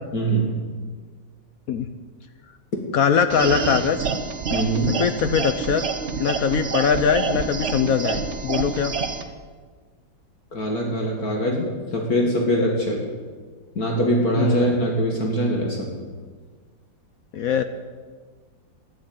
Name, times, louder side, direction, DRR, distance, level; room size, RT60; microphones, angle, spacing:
voice 1, 0.1-0.6 4.5-5.0 10.5-13.0 13.8-15.9, equal, 45° left, 0 dB, 2.4 m, -22 dB
voice 2, 2.9-4.1 5.0-5.9 6.2-8.9 14.4-14.8 17.3-17.6, left 7 dB, 70° left, 9 dB, 0.8 m, -21 dB
sound 1, 3.3-9.2, right 5 dB, 50° right, 0.9 m, -28 dB
12.0 x 10.5 x 9.0 m, 1.5 s
omnidirectional pair, 2.2 m